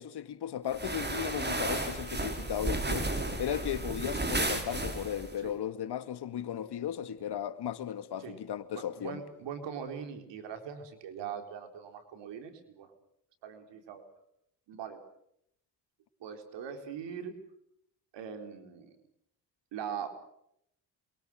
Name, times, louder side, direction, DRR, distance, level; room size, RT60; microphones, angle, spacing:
voice 1, 0.0-9.2, left 10 dB, 70° left, 2.1 m, -36 dB
sound 1, 0.7-5.4, right 2 dB, 25° right, 5.3 m, -33 dB
voice 2, 8.7-12.9 13.4-14.0 14.7-15.0 16.2-17.3 18.1-19.0 19.7-20.1, right 7 dB, 85° right, 4.3 m, -41 dB
28.0 x 23.5 x 6.4 m
cardioid pair, 75°, 42 cm